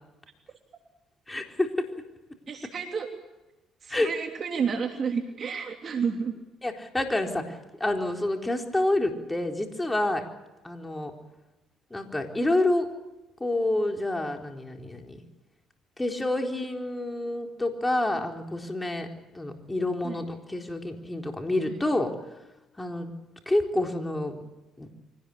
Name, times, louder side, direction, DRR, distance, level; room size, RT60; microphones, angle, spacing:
voice 1, 1.3-1.9 3.9-4.1 6.6-10.3 10.6-11.1 11.9-12.9 13.4-15.2 16.0-19.1 19.3-22.1 22.8-23.1 23.5-24.4 24.8-24.9, left 1 dB, 15° left, 3 dB, 4.1 m, -28 dB
voice 2, 2.5-3.1 3.8-6.4 20.0-20.2 21.7-21.8, right 6 dB, 45° right, 3 dB, 3.2 m, -30 dB
24.5 x 18.5 x 8.4 m, 1.1 s
cardioid pair, 85°, 0 cm